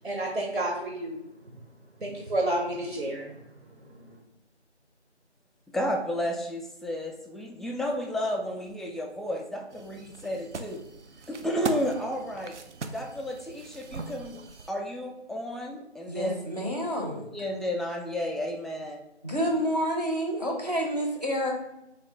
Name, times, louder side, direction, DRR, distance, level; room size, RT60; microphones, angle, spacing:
voice 1, 0.0-1.2 2.0-3.3, right 1 dB, 65° right, 0 dB, 0.8 m, -30 dB
voice 2, 5.7-10.8 11.3-12.5 12.9-14.4 14.7-16.4 17.0-19.0, equal, ahead, 0 dB, 0.3 m, -32 dB
sound 1, 9.7-14.7, right 4 dB, 90° right, 0.5 m, -39 dB
voice 3, 16.1-17.2 19.2-21.5, equal, 35° right, 0 dB, 0.6 m, -28 dB
3.5 x 2.3 x 3.6 m, 0.85 s
figure-of-eight pair, 170°, 34 cm